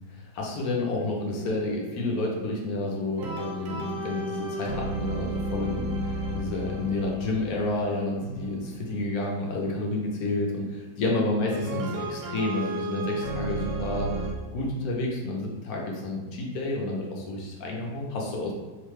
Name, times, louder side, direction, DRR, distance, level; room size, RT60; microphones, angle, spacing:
voice 1, 0.1-14.1 14.5-18.5, left 2 dB, 70° left, -1 dB, 1.0 m, -30 dB
sound 1, 3.2-8.9 11.5-14.3, right 1 dB, 90° right, 1.2 m, -33 dB
3.1 x 2.1 x 3.1 m, 1.2 s
omnidirectional pair, 1.8 m